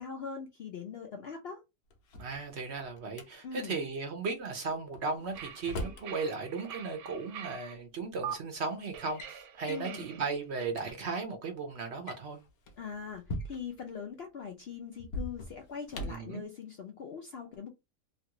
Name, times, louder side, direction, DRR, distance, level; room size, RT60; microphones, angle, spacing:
voice 1, 0.0-1.6 3.4-3.8 9.7-10.1 12.8-17.7, left 6 dB, 60° left, 0.6 m, -42 dB
Drawer open or close, 1.9-3.3 4.9-6.1 7.4-7.5 8.3-8.6 8.9-9.3 9.7-9.9 10.4-10.5 10.7-10.9 11.9-13.8 15.0-16.3, left 1 dB, 75° left, 1.2 m, -41 dB
voice 2, 2.2-12.4 16.1-16.4, right 4 dB, 55° right, 0.9 m, -36 dB
sound 1, 5.3-7.7 8.2-8.3 8.9-10.7, right 9 dB, 85° right, 1.1 m, -44 dB
3.0 x 2.4 x 2.9 m
omnidirectional pair, 1.5 m